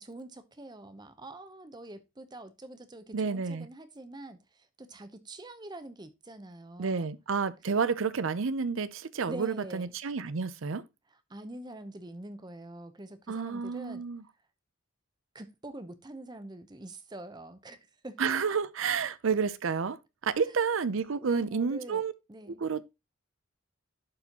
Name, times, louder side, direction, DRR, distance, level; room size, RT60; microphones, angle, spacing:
voice 1, 0.0-7.1 9.3-9.9 11.1-14.1 15.3-18.2 20.4-20.7 21.2-22.0 22.3-22.6, right 2 dB, 20° right, 0.7 m, -45 dB
voice 2, 3.1-3.7 6.8-10.8 13.3-14.2 18.2-20.0 20.2-22.1 22.5-22.8, right 5 dB, 70° right, 0.6 m, -30 dB
11.5 x 4.2 x 2.9 m
head